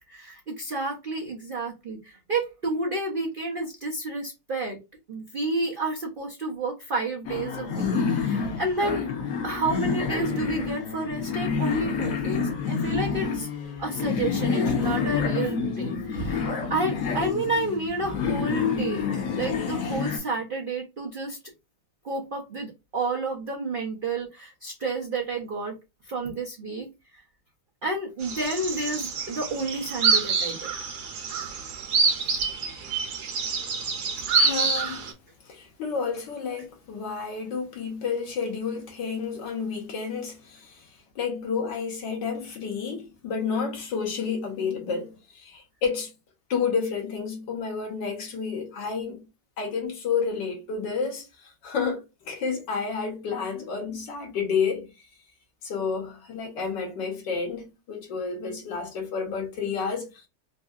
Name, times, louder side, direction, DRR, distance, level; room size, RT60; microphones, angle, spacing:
voice 1, 0.1-4.8 5.1-9.0 9.4-13.5 13.8-19.1 19.4-21.4 22.0-25.8 26.0-26.9 27.1-27.2 27.8-30.6, right 2 dB, 85° right, 0.4 m, -30 dB
sound 1, 7.2-20.2, left 6 dB, 60° left, 1.1 m, -28 dB
sound 2, 28.2-35.1, right 4 dB, 65° right, 1.2 m, -27 dB
voice 2, 34.3-35.1 35.4-40.9 41.1-46.1 46.5-49.2 49.6-54.9 55.6-60.3, left 5 dB, 80° left, 1.7 m, -30 dB
3.8 x 2.6 x 2.4 m
omnidirectional pair, 1.9 m